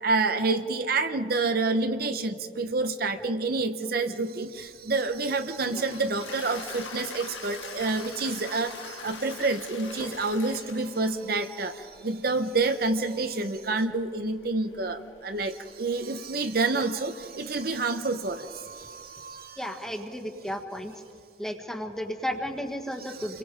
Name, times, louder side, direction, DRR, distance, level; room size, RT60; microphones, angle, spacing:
voice 1, 0.0-19.8, right 3 dB, 50° right, 9 dB, 0.8 m, -28 dB
Toilet flush, 4.9-19.4, left 5 dB, 85° left, 1.9 m, -45 dB
voice 2, 19.6-20.9 21.4-23.4, equal, 5° left, 4 dB, 1.5 m, -33 dB
28.5 x 22.5 x 5.0 m, 2.4 s
head